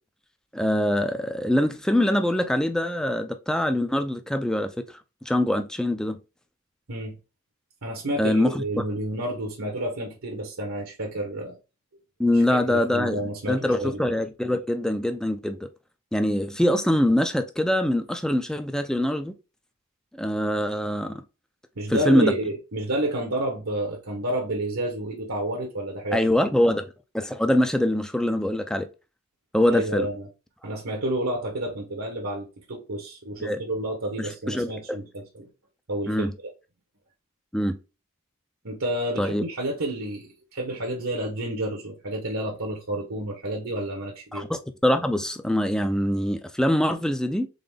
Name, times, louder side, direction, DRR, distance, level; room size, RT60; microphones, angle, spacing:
voice 1, 0.5-4.7 5.2-6.2 8.2-8.6 12.2-13.2 13.5-15.6 16.1-19.3 20.2-21.2 21.9-22.3 26.1-26.9 27.1-28.9 29.5-30.1 33.4-33.6 34.2-35.0 36.1-36.3 37.5-37.8 39.2-39.4 44.3-47.5, left 1 dB, 5° left, 0.4 m, -23 dB
voice 2, 7.8-11.6 12.3-14.0 21.8-26.2 29.6-30.3 30.6-35.5 35.9-36.3 38.6-44.5, right 1 dB, 75° right, 1.2 m, -30 dB
3.9 x 3.7 x 3.5 m
head